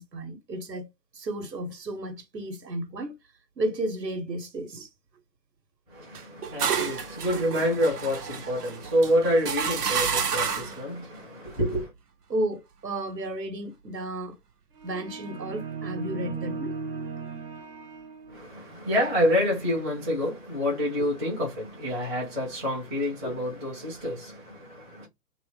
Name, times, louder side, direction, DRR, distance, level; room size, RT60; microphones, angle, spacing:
voice 1, 0.0-3.1 3.6-4.9 12.3-14.4 14.8-16.7, right 1 dB, 85° right, 1.2 m, -33 dB
voice 2, 5.9-11.9 18.3-25.1, equal, 10° right, 0.5 m, -27 dB
sound 1, 6.1-10.8, right 6 dB, 65° right, 0.9 m, -30 dB
sound 2, 14.8-18.7, right 4 dB, 35° right, 1.0 m, -37 dB
2.8 x 2.0 x 3.2 m
figure-of-eight pair, 135°, 49 cm